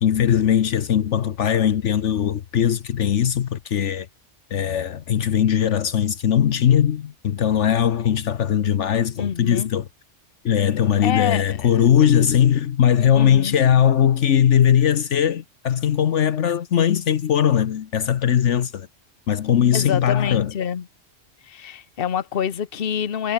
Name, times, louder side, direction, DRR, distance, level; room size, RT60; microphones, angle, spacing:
voice 1, 0.0-4.1 4.5-9.8 10.4-18.9 19.3-20.5, left 9 dB, 70° left, 1.2 m, -19 dB
voice 2, 9.2-9.7 11.0-11.7 13.2-13.6 19.7-20.9 21.4-23.3, left 8 dB, 50° left, 1.2 m, -26 dB
omnidirectional pair, 1.3 m